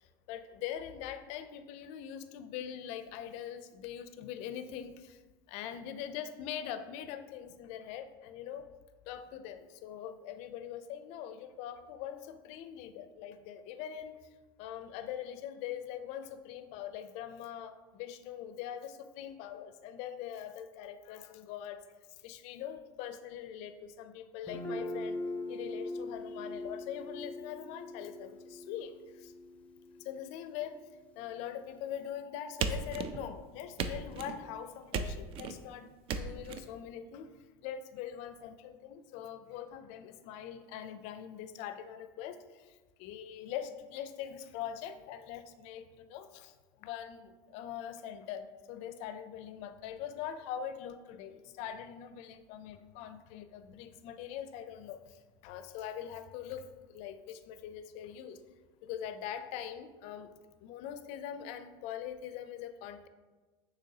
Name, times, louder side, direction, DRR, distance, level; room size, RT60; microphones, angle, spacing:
voice 1, 0.3-5.2 5.5-8.7 9.1-14.2 14.6-21.8 22.2-25.2 25.5-28.9 29.2-29.3 30.0-30.8 31.2-37.3 37.6-42.4 43.0-46.5 46.8-55.0 55.4-56.6 56.9-58.4 58.8-60.3 60.6-63.1, left 9 dB, 60° left, 11 dB, 0.4 m, -42 dB
Guitar, 24.5-32.2, left 1 dB, 10° left, 0.5 m, -42 dB
sound 1, 32.6-33.4 33.8-34.4 34.9-35.6 36.1-36.6, right 5 dB, 45° right, 0.4 m, -35 dB
6.4 x 3.0 x 2.7 m, 1.3 s
supercardioid pair, 100°, 13 cm